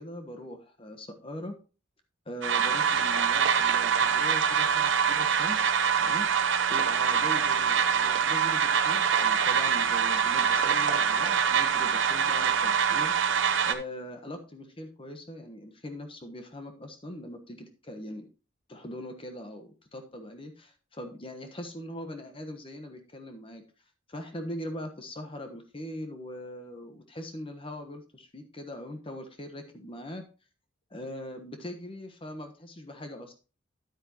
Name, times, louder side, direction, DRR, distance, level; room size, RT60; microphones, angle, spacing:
voice 1, 0.0-1.5 2.3-13.1 13.6-18.3 18.7-23.6 24.1-30.2 30.9-33.5, left 1 dB, 25° left, 5 dB, 1.2 m, -41 dB
sound 1, 2.4-13.7, right 7 dB, 70° right, 0.9 m, -25 dB
9.5 x 8.8 x 2.9 m, 0.33 s
head